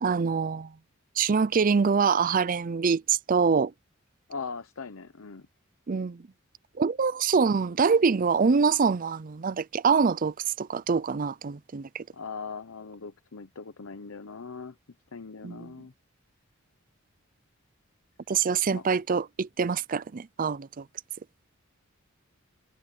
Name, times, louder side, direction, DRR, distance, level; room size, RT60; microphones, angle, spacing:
voice 1, 0.0-0.7 1.2-3.7 5.9-6.2 6.8-12.0 15.4-15.7 18.3-20.8, right 5 dB, 40° right, 0.5 m, -25 dB
voice 2, 4.3-5.5 12.1-14.8 15.1-15.9 18.7-18.9, left 5 dB, 75° left, 0.8 m, -40 dB
head